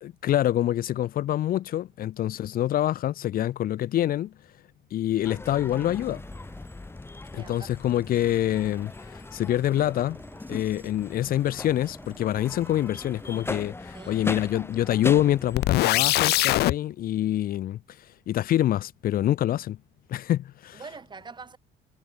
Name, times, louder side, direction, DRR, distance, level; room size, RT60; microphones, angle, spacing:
voice 1, 0.0-4.3 4.9-6.2 7.3-10.2 10.5-19.8 20.1-20.8, left 12 dB, 60° left, 1.0 m, -26 dB
sound 1, 5.2-16.1, left 2 dB, 15° left, 2.8 m, -39 dB
sound 2, 5.6-13.6, right 2 dB, 10° right, 4.4 m, -51 dB
voice 2, 7.3-7.7 13.9-14.2 20.7-21.6, right 4 dB, 25° right, 6.6 m, -43 dB
sound 3, 15.5-16.7, left 17 dB, 75° left, 0.6 m, -21 dB
cardioid pair, 110°, 17 cm